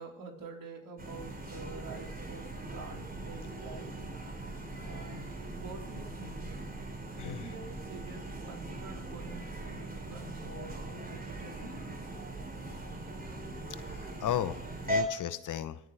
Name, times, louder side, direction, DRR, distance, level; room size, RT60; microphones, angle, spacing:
voice 1, 0.0-3.9 4.8-6.7 7.2-11.7, right 3 dB, 60° right, 0 dB, 4.2 m, -47 dB
sound 1, 1.0-15.0, right 1 dB, 25° right, 3.5 m, -40 dB
voice 2, 7.2-7.5 13.8-14.6 14.9-15.8, left 10 dB, 55° left, 14 dB, 0.8 m, -35 dB
25.0 x 9.5 x 3.4 m, 0.83 s
supercardioid pair, 75°, 38 cm